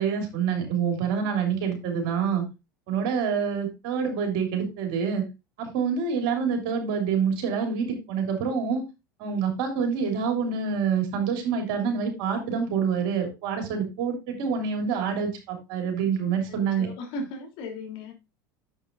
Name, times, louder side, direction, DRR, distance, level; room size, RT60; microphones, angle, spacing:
voice 1, 0.0-2.4 2.9-5.2 5.6-8.8 9.2-16.9, right 6 dB, 55° right, 3.1 m, -27 dB
voice 2, 16.4-18.1, left 2 dB, 50° left, 3.1 m, -37 dB
10.5 x 7.2 x 2.5 m
figure-of-eight pair, 80°, 11 cm